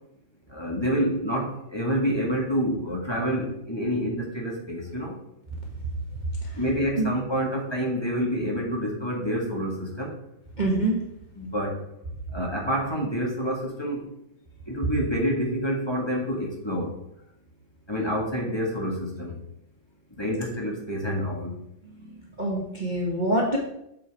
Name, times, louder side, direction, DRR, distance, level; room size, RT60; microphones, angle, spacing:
voice 1, 0.5-5.1 6.6-10.2 11.4-11.8 12.3-14.1 14.7-17.0 17.9-19.4 20.1-21.5, equal, 15° left, -2 dB, 1.5 m, -28 dB
voice 2, 10.6-11.0 21.8-23.6, right 1 dB, 25° right, -3 dB, 1.2 m, -26 dB
7.1 x 6.1 x 4.7 m, 0.81 s
omnidirectional pair, 2.1 m